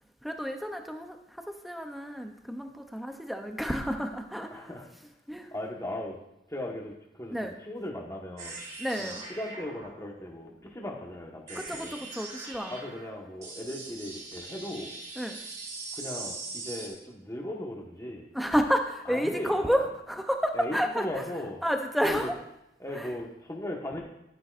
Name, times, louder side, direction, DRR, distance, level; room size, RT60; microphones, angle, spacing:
voice 1, 0.2-4.8 5.3-5.5 7.3-7.5 8.8-9.2 11.5-12.8 15.2-15.4 18.3-21.2 21.6-22.3 22.9-23.1, equal, ahead, 4 dB, 0.6 m, -30 dB
voice 2, 4.5-4.9 5.5-6.2 6.5-7.4 7.6-8.6 9.0-12.0 12.7-14.9 15.9-18.3 19.1-19.6 20.5-21.6 22.0-22.3 22.8-24.0, left 1 dB, 20° left, 0 dB, 1.4 m, -37 dB
sound 1, 8.4-16.9, right 3 dB, 45° right, 2.9 m, -42 dB
11.5 x 10.0 x 2.6 m, 0.84 s
head